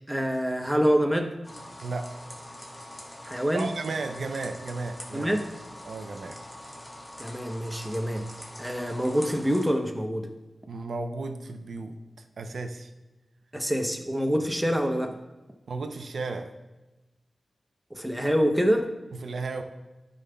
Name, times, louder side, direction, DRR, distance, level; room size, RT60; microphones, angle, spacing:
voice 1, 0.1-1.4 3.2-3.7 5.1-5.5 7.2-8.3 8.6-10.3 13.5-15.2 17.9-18.9, equal, 5° right, 4 dB, 0.8 m, -26 dB
sound 1, 1.4-9.7, left 1 dB, 20° left, 1.5 m, -44 dB
voice 2, 1.8-2.2 3.5-5.3 5.8-6.4 10.7-12.9 15.7-16.5 19.1-19.6, right 3 dB, 85° right, 6 dB, 0.6 m, -34 dB
12.0 x 5.2 x 2.3 m, 1.1 s
wide cardioid pair, 100°, 0 cm